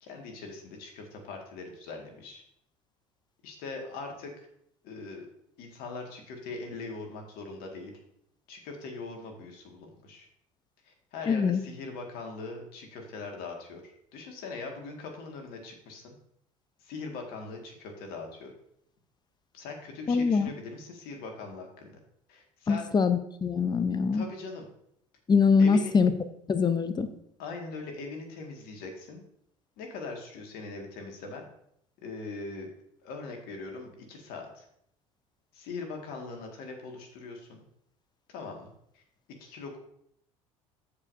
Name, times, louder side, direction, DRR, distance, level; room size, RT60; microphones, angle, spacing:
voice 1, 0.0-2.4 3.4-4.5 4.8-5.3 5.6-7.9 8.5-10.3 10.8-16.1 16.8-18.5 19.5-22.0 22.3-22.9 24.1-24.7 25.6-25.9 27.4-29.2 29.8-31.5 32.0-32.7 33.0-34.6 35.5-37.6 38.3-39.0 39.4-39.8, left 3 dB, 60° left, 2 dB, 2.0 m, -41 dB
voice 2, 11.3-11.6 20.1-20.5 22.7-24.2 25.3-26.1 26.5-27.1, left 5 dB, 25° left, 11 dB, 0.8 m, -23 dB
14.5 x 5.0 x 2.7 m, 0.71 s
hypercardioid pair, 65°, 17 cm